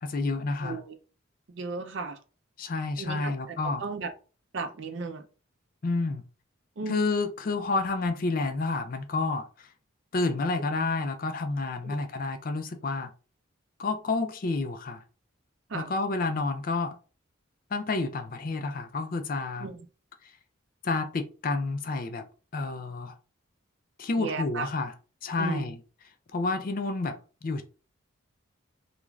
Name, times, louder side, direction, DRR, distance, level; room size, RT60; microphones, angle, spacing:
voice 1, 0.0-0.8 2.6-3.8 5.8-6.2 6.9-9.7 10.1-13.1 13.8-15.0 15.7-17.0 17.7-19.7 20.8-22.3 22.5-23.1 24.0-24.9 25.2-25.8 26.3-27.6, left 3 dB, 40° left, 0.4 m, -29 dB
voice 2, 0.6-1.0 1.5-2.2 3.0-4.1 4.5-5.2 6.8-7.0 11.8-11.9 15.7-15.9 19.6-19.9 24.2-24.7 25.4-25.7, right 4 dB, 60° right, 0.5 m, -35 dB
2.4 x 2.3 x 3.1 m
head